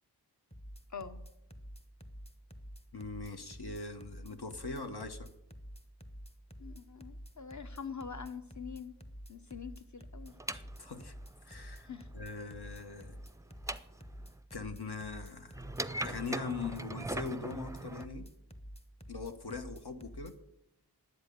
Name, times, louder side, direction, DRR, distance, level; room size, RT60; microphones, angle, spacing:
sound 1, 0.5-20.3, equal, 15° left, 1.0 m, -48 dB
voice 1, 0.9-1.2 6.6-8.9 9.3-10.4 11.8-12.1, left 6 dB, 45° left, 9 dB, 1.0 m, -44 dB
voice 2, 2.9-5.3 10.5-11.1 11.4-11.9 12.1-13.2 14.5-15.6 16.0-18.3 19.1-20.3, left 4 dB, 70° left, 7 dB, 1.1 m, -41 dB
sound 2, 10.3-14.4 15.5-18.1, right 2 dB, 10° right, 0.5 m, -41 dB
10.5 x 8.1 x 6.6 m, 0.87 s
wide cardioid pair, 55°, 40 cm